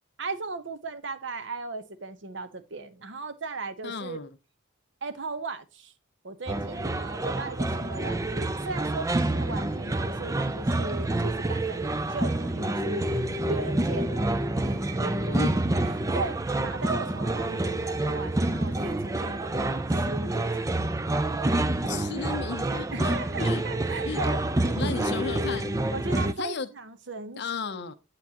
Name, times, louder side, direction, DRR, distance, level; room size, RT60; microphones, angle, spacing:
voice 1, 0.2-4.2 5.0-5.9 6.2-13.0 13.5-15.4 15.8-21.0 22.7-24.8 25.9-27.9, right 3 dB, 60° right, 0.9 m, -37 dB
voice 2, 3.8-4.3 15.3-15.6 21.8-23.1 23.4-23.6 24.0-24.2 24.7-25.8 26.0-26.7 27.4-27.9, left 4 dB, 55° left, 0.6 m, -34 dB
music from window, 6.5-26.3, right 2 dB, 15° right, 0.4 m, -28 dB
9.6 x 8.3 x 2.9 m
head